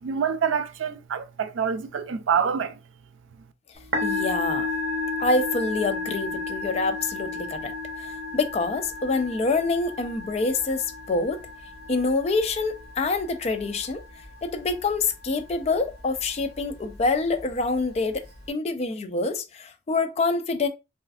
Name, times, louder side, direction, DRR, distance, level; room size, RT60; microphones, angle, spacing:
voice 1, 0.0-2.8, right 7 dB, 85° right, 0.4 m, -26 dB
Musical instrument, 3.8-18.5, left 2 dB, 55° right, 0.8 m, -34 dB
voice 2, 4.0-4.7 5.2-7.7 8.0-11.4 11.9-14.0 14.4-20.7, left 3 dB, 35° left, 0.4 m, -26 dB
3.2 x 2.4 x 2.3 m
head